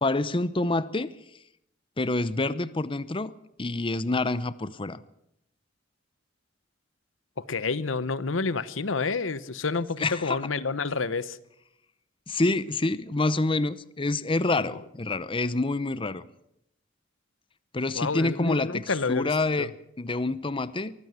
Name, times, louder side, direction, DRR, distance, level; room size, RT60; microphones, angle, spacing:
voice 1, 0.0-1.1 2.0-3.3 3.6-5.0 10.0-10.4 12.3-16.2 17.7-18.8 19.1-20.9, left 2 dB, 25° left, 16 dB, 0.7 m, -27 dB
voice 2, 7.5-11.4 14.6-14.7 17.9-19.7, left 4 dB, 85° left, 16 dB, 1.0 m, -29 dB
23.5 x 15.5 x 8.1 m, 0.78 s
head